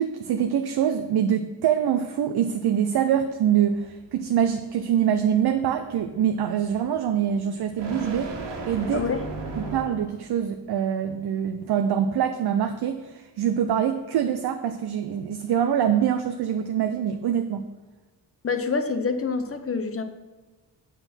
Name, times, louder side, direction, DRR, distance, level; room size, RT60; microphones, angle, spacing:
voice 1, 0.0-9.1 9.6-17.7, right 9 dB, 65° right, 7 dB, 0.7 m, -24 dB
sound 1, 3.3-10.2, right 2 dB, 90° right, 1.9 m, -38 dB
voice 2, 8.9-9.2 18.4-20.0, left 4 dB, 35° left, 8 dB, 0.8 m, -26 dB
7.9 x 6.3 x 5.8 m, 1.2 s
cardioid pair, 115°, 42 cm